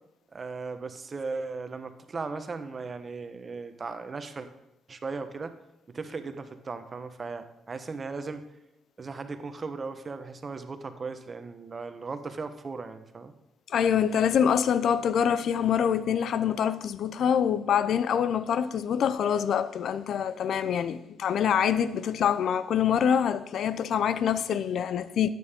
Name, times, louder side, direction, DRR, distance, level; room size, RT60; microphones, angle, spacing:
voice 1, 0.3-4.5 4.9-5.5 5.9-8.4 9.0-13.3, right 4 dB, 35° right, 1.1 m, -37 dB
voice 2, 13.7-25.3, left 8 dB, 65° left, 0.6 m, -25 dB
12.5 x 9.3 x 3.7 m
cardioid pair, 80°, 0 cm